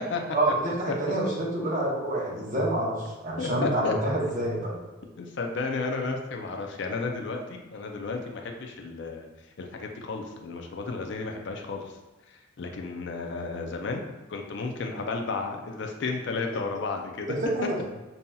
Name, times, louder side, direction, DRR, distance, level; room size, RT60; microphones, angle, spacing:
voice 1, 0.3-4.8 17.3-17.8, right 1 dB, 40° right, -4 dB, 1.0 m, -27 dB
voice 2, 3.4-3.9 5.2-9.3 9.6-12.0 12.3-14.0 14.3-17.3, left 3 dB, 60° left, 3 dB, 0.4 m, -33 dB
5.3 x 2.7 x 2.3 m, 1.1 s
head